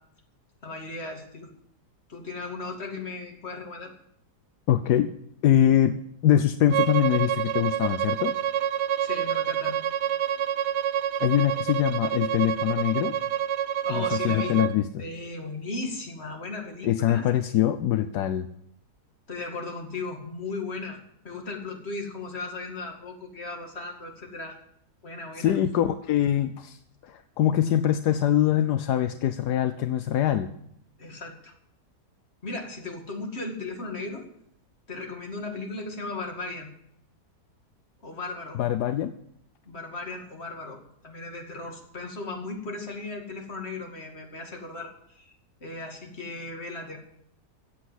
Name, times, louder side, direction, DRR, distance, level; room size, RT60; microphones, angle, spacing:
voice 1, 0.6-1.5 2.1-3.9 9.0-9.8 13.8-14.6 15.0-17.3 19.3-21.0 21.2-24.6 25.0-25.6 31.0-31.5 32.4-34.3 34.9-36.7 38.0-38.6 39.7-45.4 45.6-47.0, left 3 dB, 40° left, 2 dB, 2.6 m, -36 dB
voice 2, 4.7-5.1 5.4-6.0 6.2-8.3 11.2-13.1 13.9-15.0 16.8-18.5 25.4-26.8 27.0-30.5 38.6-39.1, left 11 dB, 80° left, 10 dB, 1.3 m, -23 dB
Bowed string instrument, 6.7-14.7, right 10 dB, 90° right, 1.3 m, -27 dB
15.0 x 8.3 x 7.7 m, 0.71 s
omnidirectional pair, 1.7 m